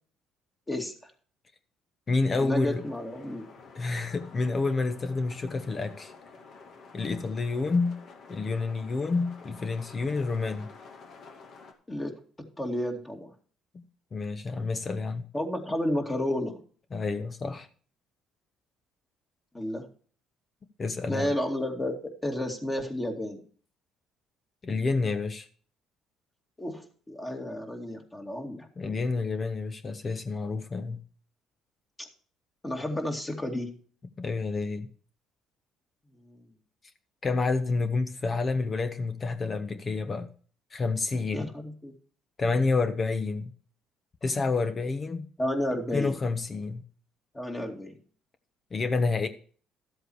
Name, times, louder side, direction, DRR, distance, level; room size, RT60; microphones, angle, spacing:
voice 1, 0.7-1.1 2.4-3.5 11.9-13.3 15.3-16.6 19.5-19.9 21.1-23.4 26.6-28.7 32.0-32.1 32.6-33.8 36.2-36.4 41.3-41.9 45.4-46.2 47.3-47.9, left 1 dB, 20° left, 2.6 m, -32 dB
voice 2, 2.1-2.8 3.7-6.1 6.9-8.0 8.3-10.7 13.7-13.8 14.1-15.3 16.9-17.7 20.8-21.3 24.6-25.5 28.8-31.0 34.2-34.9 37.2-40.3 40.7-41.5 42.4-43.5 44.2-45.3 45.9-46.8 48.7-49.3, left 3 dB, 35° left, 1.1 m, -29 dB
sound 1, 2.7-11.7, left 4 dB, 60° left, 2.3 m, -50 dB
13.0 x 7.9 x 4.8 m
supercardioid pair, 80°, 0 cm